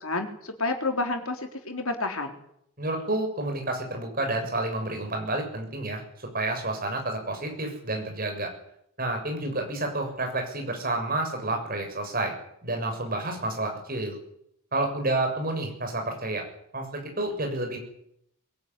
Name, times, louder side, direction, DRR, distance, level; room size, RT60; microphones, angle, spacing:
voice 1, 0.0-2.3, left 2 dB, 75° left, 5 dB, 3.9 m, -30 dB
voice 2, 2.8-6.0 6.3-8.5 9.0-12.3 12.6-14.2 14.7-16.4 16.7-17.8, right 2 dB, 40° right, 3 dB, 6.9 m, -29 dB
22.5 x 18.5 x 9.8 m, 0.76 s
head